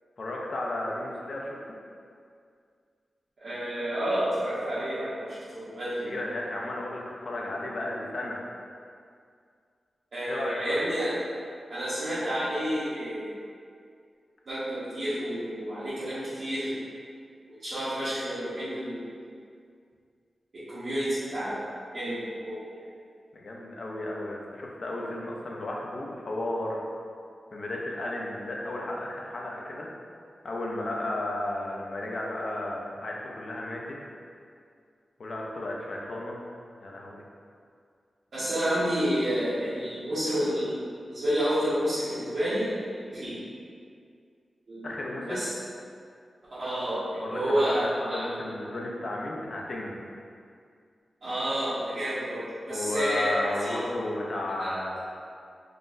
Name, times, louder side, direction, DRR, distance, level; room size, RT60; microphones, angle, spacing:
voice 1, 0.2-1.8 6.1-8.4 10.3-10.9 23.3-26.8 27.5-29.9 30.4-33.9 35.2-36.4 36.7-37.2 44.8-45.4 47.2-50.1 52.7-55.0, left 1 dB, 50° left, -2 dB, 0.4 m, -33 dB
voice 2, 3.4-6.1 10.1-11.2 11.7-13.4 14.5-16.8 17.6-19.1 20.5-21.6 21.9-22.9 38.3-43.4 44.7-44.9 45.3-45.5 46.5-48.2 51.2-53.8 54.6-54.8, equal, 55° right, -14 dB, 0.8 m, -30 dB
3.7 x 2.0 x 2.5 m, 2.3 s
wide cardioid pair, 170°, 0 cm